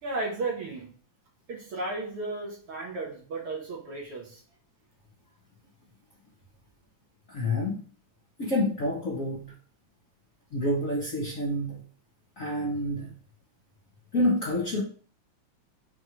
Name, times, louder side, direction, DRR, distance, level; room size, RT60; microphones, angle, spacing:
voice 1, 0.0-0.9 1.5-4.4, right 2 dB, 55° right, 1.9 m, -34 dB
voice 2, 7.3-7.8 8.4-9.5 10.5-11.8 12.4-13.1 14.1-14.8, left 1 dB, 75° left, 0.7 m, -28 dB
6.3 x 3.1 x 5.0 m
omnidirectional pair, 3.4 m